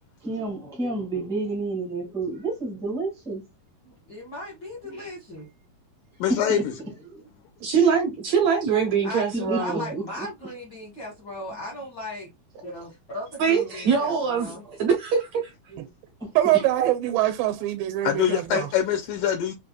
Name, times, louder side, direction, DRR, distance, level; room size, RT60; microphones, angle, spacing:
voice 1, 0.2-3.4 4.8-5.0 6.3-6.7 7.0-7.2 9.3-10.3 13.7-13.8 14.1-14.2 14.5-14.8 16.2-16.6, right 2 dB, 5° left, 0.4 m, -30 dB
voice 2, 3.8-5.5 9.0-12.3 12.6-14.6, left 1 dB, 60° left, 1.1 m, -37 dB
voice 3, 6.2-6.7 18.0-19.5, left 10 dB, 80° left, 2.1 m, -24 dB
voice 4, 7.6-9.9 13.4-14.5 14.8-15.8 16.8-16.9, right 6 dB, 70° right, 1.7 m, -23 dB
voice 5, 16.4-18.7, right 14 dB, 85° right, 2.4 m, -23 dB
6.1 x 2.6 x 2.2 m
omnidirectional pair, 4.1 m